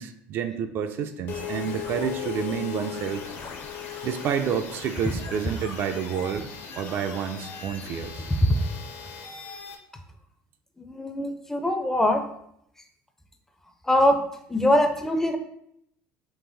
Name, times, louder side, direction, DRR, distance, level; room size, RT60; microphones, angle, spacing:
voice 1, 0.0-3.3 4.0-6.5 6.8-8.2, right 7 dB, 50° right, 7 dB, 0.4 m, -29 dB
sound 1, 1.3-9.8, left 7 dB, 55° left, 0.7 m, -37 dB
voice 2, 10.8-12.2 13.8-14.2 14.5-15.4, left 1 dB, 10° left, 6 dB, 0.4 m, -22 dB
3.9 x 2.6 x 3.9 m, 0.73 s
cardioid pair, 120°, 5 cm